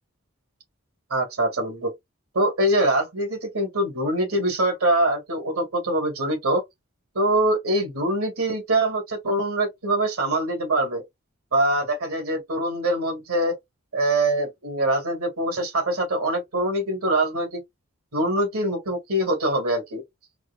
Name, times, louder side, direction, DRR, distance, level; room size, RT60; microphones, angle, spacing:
voice 1, 1.1-1.9 2.3-6.6 7.2-11.0 11.5-13.5 13.9-17.6 18.1-20.0, right 1 dB, 90° right, 2.0 m, -24 dB
4.7 x 2.6 x 2.3 m
head